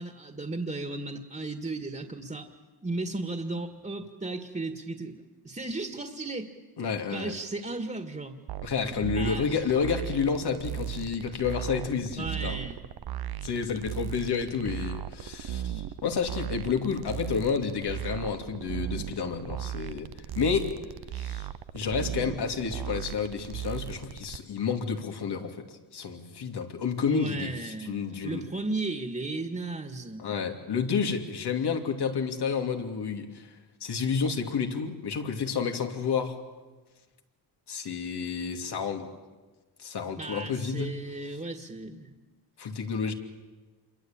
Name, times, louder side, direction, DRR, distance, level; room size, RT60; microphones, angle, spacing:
voice 1, 0.0-2.5 2.8-6.5 7.1-8.4 9.1-9.6 12.2-12.8 27.1-30.2 40.1-42.1, right 2 dB, 20° right, 6 dB, 2.1 m, -35 dB
voice 2, 6.8-7.3 8.6-12.6 13.4-20.8 21.1-21.5 21.7-25.6 25.9-28.4 30.2-33.5 33.8-36.4 37.7-39.1 39.8-41.0 42.6-43.1, left 6 dB, 80° left, 4 dB, 2.9 m, -30 dB
sound 1, 8.5-24.4, right 12 dB, 70° right, 0.9 m, -37 dB
27.5 x 23.0 x 9.0 m, 1.2 s
cardioid pair, 70°, 39 cm